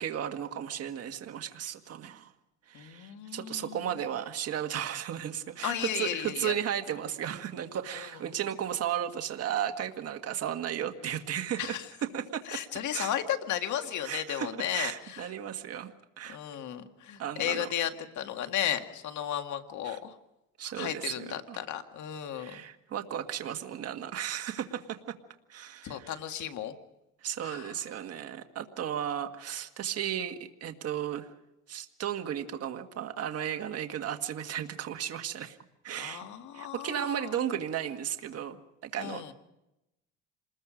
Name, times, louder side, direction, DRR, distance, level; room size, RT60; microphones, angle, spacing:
voice 1, 0.0-2.3 2.7-11.8 12.1-12.6 12.9-13.1 14.0-16.4 17.2-17.7 19.8-20.0 20.6-21.6 22.3-25.1 25.5-26.1 27.2-31.3 31.7-35.6 35.8-36.3 36.5-39.3, right 10 dB, 50° right, 6 dB, 1.8 m, -35 dB
voice 2, 2.7-3.9 5.6-6.6 8.0-8.1 11.6-11.9 12.5-15.3 16.3-20.2 20.8-22.6 25.8-26.8 27.4-27.7 36.0-37.4 39.0-39.3, left 10 dB, 60° left, 7 dB, 1.9 m, -34 dB
27.5 x 21.0 x 5.2 m, 0.91 s
cardioid pair, 115°, 32 cm